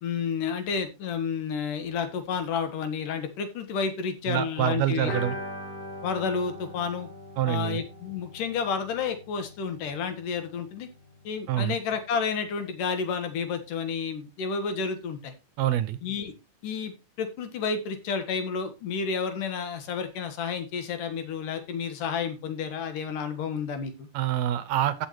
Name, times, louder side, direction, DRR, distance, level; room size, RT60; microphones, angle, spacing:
voice 1, 0.0-5.2 6.0-7.1 7.5-10.9 11.2-15.3 16.0-16.3 16.6-24.1, left 6 dB, 90° left, 8 dB, 3.2 m, -31 dB
voice 2, 4.3-5.4 7.4-7.8 11.5-11.8 15.6-16.0 24.1-25.1, right 12 dB, 75° right, 14 dB, 1.7 m, -26 dB
sound 1, 5.0-10.6 10.9-11.0 11.3-11.4, left 1 dB, 25° left, 7.9 m, -40 dB
15.5 x 6.3 x 3.1 m, 0.25 s
omnidirectional pair, 3.6 m